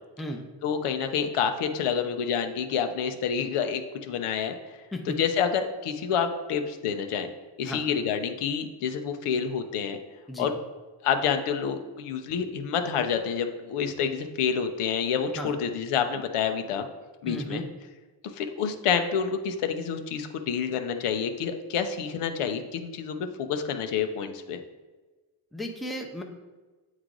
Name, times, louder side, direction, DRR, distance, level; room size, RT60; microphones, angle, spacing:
voice 1, 0.6-4.8 5.2-7.3 7.6-10.0 10.4-10.5 11.0-16.9 17.2-17.6 18.3-24.6, left 7 dB, 90° left, 7 dB, 0.7 m, -28 dB
voice 2, 17.3-17.6 25.5-26.2, equal, ahead, 2 dB, 0.6 m, -34 dB
8.4 x 3.2 x 3.8 m, 1.3 s
cardioid pair, 100°, 50 cm